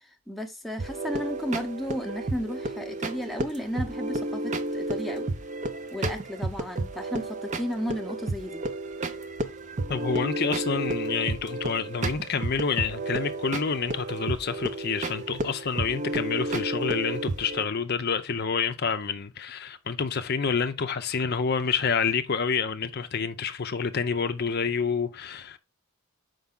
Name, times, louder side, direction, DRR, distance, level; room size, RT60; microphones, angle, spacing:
voice 1, 0.0-5.3 5.9-8.6, equal, ahead, 0.8 m, -34 dB
sound 1, 0.8-17.6, right 2 dB, 35° right, 0.6 m, -32 dB
voice 2, 9.9-25.6, left 5 dB, 45° left, 0.6 m, -28 dB
7.0 x 5.2 x 3.7 m
head